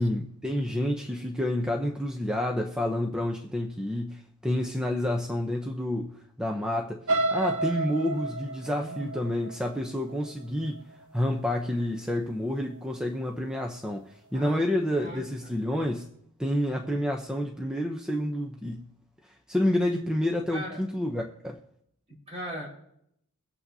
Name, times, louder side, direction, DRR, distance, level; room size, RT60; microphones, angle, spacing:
voice 1, 0.0-7.0 7.3-10.8 11.1-16.1 16.4-18.8 19.5-21.6, left 1 dB, 5° right, 1 dB, 0.7 m, -29 dB
sound 1, 7.1-11.0 11.5-11.8 12.2-12.3, right 2 dB, 80° right, 1.2 m, -31 dB
voice 2, 8.8-9.2 14.3-15.5 20.5-20.8 22.1-22.8, equal, 30° right, -2 dB, 4.3 m, -39 dB
23.0 x 8.3 x 2.8 m, 0.75 s
head